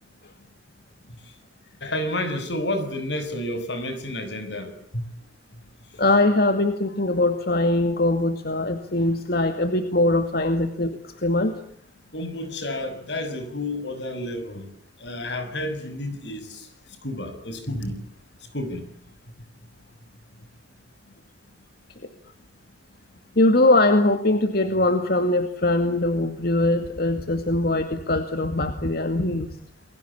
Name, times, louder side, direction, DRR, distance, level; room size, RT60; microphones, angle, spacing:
voice 1, 1.8-5.1 12.1-14.7 15.0-16.7 17.0-18.0 18.5-18.8, left 1 dB, 85° left, 10 dB, 6.6 m, -30 dB
voice 2, 6.0-11.6 23.4-29.5, left 2 dB, 60° left, 7 dB, 2.3 m, -21 dB
29.5 x 22.5 x 8.6 m, 0.63 s
head